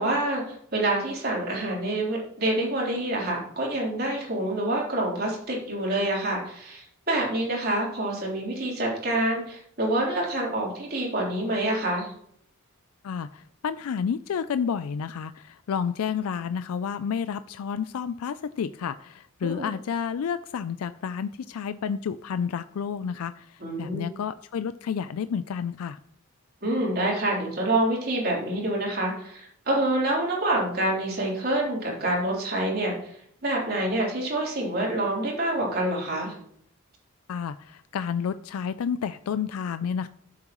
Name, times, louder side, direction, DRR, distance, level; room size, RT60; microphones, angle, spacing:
voice 1, 0.0-12.1 19.4-19.7 23.6-24.0 26.6-36.4, right 1 dB, 45° right, -3 dB, 3.6 m, -27 dB
voice 2, 13.0-26.0 37.3-40.1, left 7 dB, 85° left, 13 dB, 0.4 m, -30 dB
13.0 x 7.4 x 3.0 m, 0.68 s
head